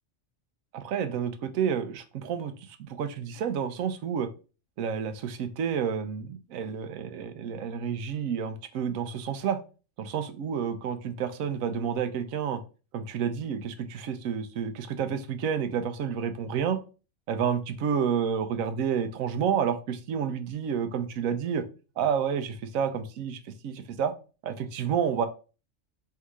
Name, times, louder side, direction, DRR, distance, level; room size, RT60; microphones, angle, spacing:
voice 1, 0.7-4.3 4.8-9.6 10.0-12.6 12.9-16.8 17.3-21.6 22.0-24.1 24.4-25.3, right 7 dB, 90° right, 10 dB, 1.0 m, -30 dB
3.5 x 2.8 x 4.6 m, 0.34 s
omnidirectional pair, 1.4 m